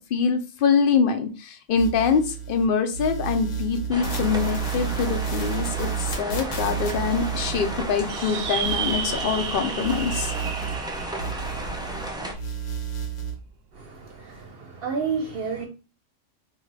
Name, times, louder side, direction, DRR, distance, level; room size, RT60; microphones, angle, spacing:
voice 1, 0.1-10.3, left 6 dB, 55° left, 0.7 m, -24 dB
sound 1, 1.8-2.7 2.9-9.5 9.8-12.1 12.3-13.3, right 7 dB, 85° left, 1.4 m, -31 dB
sound 2, 3.9-12.3, right 1 dB, 5° right, 0.3 m, -33 dB
sound 3, 8.1-12.8, right 7 dB, 85° right, 0.9 m, -33 dB
voice 2, 13.7-15.7, right 5 dB, 55° right, 0.8 m, -30 dB
3.4 x 2.7 x 4.6 m
omnidirectional pair, 1.3 m